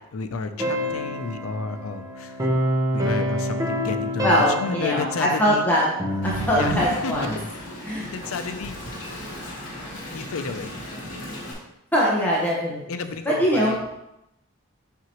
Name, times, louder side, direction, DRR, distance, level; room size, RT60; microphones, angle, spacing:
voice 1, 0.1-2.4 2.9-4.3 4.6-5.7 6.5-7.1 8.1-8.8 10.1-10.7 12.9-13.9, left 4 dB, 80° left, 9 dB, 0.5 m, -31 dB
sound 1, 0.6-6.7, equal, 15° right, 0.8 m, -27 dB
voice 2, 4.2-5.8 6.2-7.4 7.8-8.1 11.9-12.8 13.2-13.8, equal, 10° left, -6 dB, 1.1 m, -22 dB
Wind, 6.2-11.5, left 1 dB, 60° left, 2.0 m, -35 dB
5.9 x 5.8 x 3.0 m, 0.88 s
head